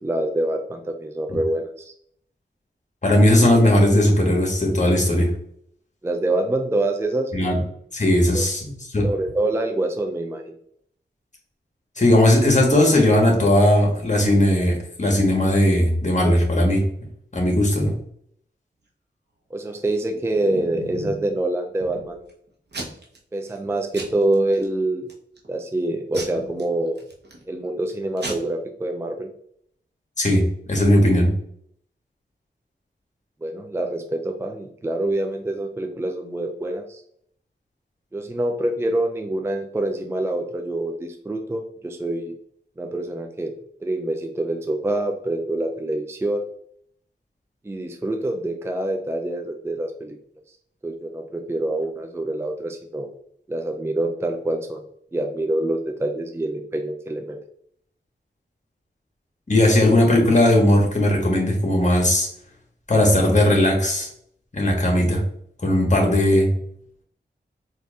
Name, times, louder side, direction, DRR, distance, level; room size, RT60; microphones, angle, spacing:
voice 1, 0.0-1.9 6.0-7.5 8.3-8.5 9.0-10.5 19.5-22.2 23.3-25.1 25.5-27.0 27.5-29.3 33.4-37.0 38.1-42.3 42.8-43.5 43.8-46.4 47.6-50.2 50.8-53.1 53.5-54.8 55.1-57.4, right 1 dB, 15° right, 4 dB, 0.4 m, -26 dB
voice 2, 3.0-5.3 7.3-7.6 7.9-9.1 12.0-16.8 17.3-17.9 30.2-31.3 59.5-62.3 62.9-64.1 64.5-65.2 65.6-66.5, left 1 dB, 40° left, -1 dB, 1.3 m, -18 dB
Packing tape duct tape / Tearing, 19.9-21.3 21.8-22.3 22.7-23.2 23.5-23.7 23.9-24.6 25.1-25.5 26.1-27.4 27.9-28.0 28.2-28.3, right 2 dB, 60° right, 1.0 m, -35 dB
4.4 x 2.6 x 2.4 m, 0.68 s
cardioid pair, 45°, 19 cm